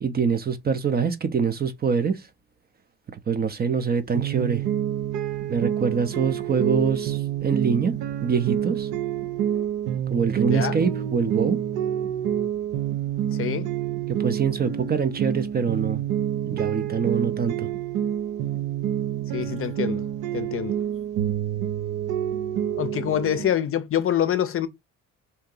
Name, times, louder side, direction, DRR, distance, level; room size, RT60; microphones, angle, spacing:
voice 1, 0.0-2.2 3.1-4.6 5.5-8.0 8.2-8.9 10.1-11.6 14.1-16.0 16.5-17.7, right 6 dB, 30° right, 0.5 m, -24 dB
sound 1, 4.1-23.5, right 10 dB, 85° right, 0.6 m, -28 dB
voice 2, 10.5-10.8 13.3-13.7 19.3-20.1 20.3-20.8 22.8-24.7, left 10 dB, 45° left, 0.5 m, -26 dB
2.8 x 2.7 x 3.7 m
cardioid pair, 90°, 30 cm